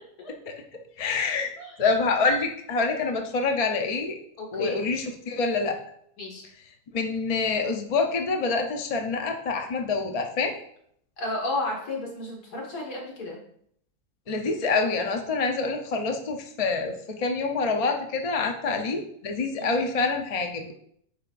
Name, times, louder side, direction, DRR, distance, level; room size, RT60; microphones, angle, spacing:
voice 1, 1.0-1.5 1.8-4.2 4.5-5.8 6.9-10.5 14.3-20.7, left 4 dB, 45° left, 3 dB, 0.4 m, -26 dB
voice 2, 4.4-4.9 6.2-6.4 11.2-13.4 19.6-19.9, left 2 dB, 80° left, -2 dB, 2.2 m, -33 dB
8.4 x 5.0 x 2.5 m, 0.68 s
omnidirectional pair, 1.6 m